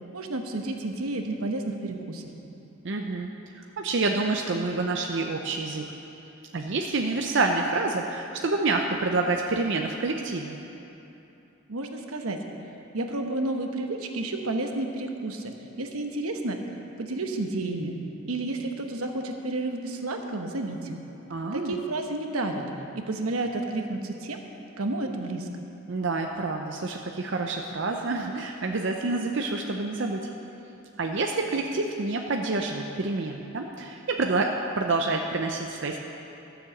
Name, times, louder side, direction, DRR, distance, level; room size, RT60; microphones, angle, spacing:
voice 1, 0.1-2.3 11.7-12.4 12.9-15.5 15.8-16.6 17.0-17.9 18.3-21.0 21.5-22.6 22.9-24.4 24.8-25.6, right 2 dB, 85° right, 4 dB, 1.1 m, -31 dB
voice 2, 2.8-3.3 3.8-5.9 6.5-10.6 21.3-21.8 25.9-30.2 31.0-36.0, right 3 dB, 55° right, 2 dB, 0.6 m, -28 dB
13.0 x 7.3 x 7.1 m, 2.9 s
head